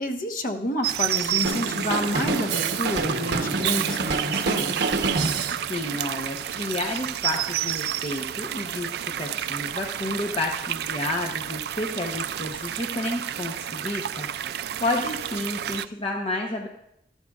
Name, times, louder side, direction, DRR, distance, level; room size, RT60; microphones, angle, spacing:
voice 1, 0.0-4.9, left 1 dB, 50° left, 4 dB, 1.2 m, -29 dB
sound 1, 0.8-15.9, right 10 dB, 60° right, 0.3 m, -30 dB
Drum kit, 1.4-5.6, right 3 dB, 80° right, 0.9 m, -27 dB
sound 2, 5.6-12.8, right 2 dB, 15° right, 4.3 m, -52 dB
voice 2, 5.7-8.9 9.2-16.7, left 2 dB, 30° left, 1 dB, 0.8 m, -31 dB
13.5 x 13.0 x 2.4 m, 0.76 s
head